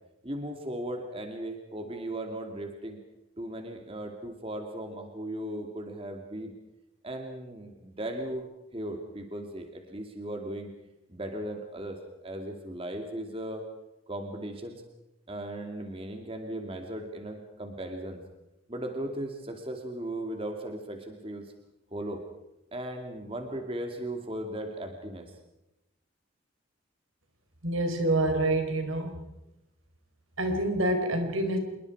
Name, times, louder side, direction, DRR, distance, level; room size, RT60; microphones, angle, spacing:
voice 1, 0.2-3.0 3.4-6.5 7.0-8.5 8.7-10.7 11.1-13.6 14.1-14.8 15.3-18.2 18.7-21.5 21.9-22.2 22.7-25.3, right 1 dB, 25° right, 4 dB, 2.4 m, -37 dB
voice 2, 27.6-29.2 30.4-31.6, right 1 dB, 80° right, 5 dB, 4.2 m, -27 dB
27.0 x 22.5 x 4.8 m, 0.92 s
head